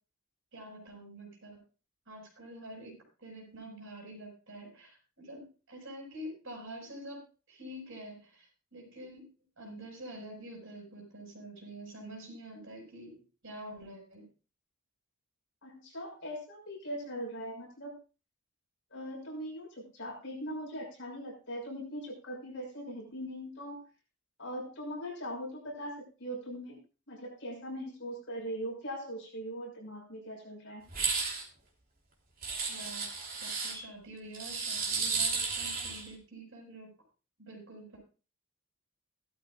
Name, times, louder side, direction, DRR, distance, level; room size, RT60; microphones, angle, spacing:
voice 1, 0.5-1.6 2.1-9.3 9.6-14.3 32.7-33.1 33.4-36.9 37.4-38.0, right 1 dB, 60° right, 1 dB, 7.0 m, -47 dB
voice 2, 15.6-17.9 18.9-19.7 19.9-23.8 24.4-26.8 27.1-30.8, equal, 55° left, -1 dB, 6.6 m, -40 dB
sound 1, 30.9-31.4 32.4-33.7 34.3-36.1, right 4 dB, 40° right, 3.2 m, -33 dB
17.5 x 13.0 x 2.5 m, 0.34 s
head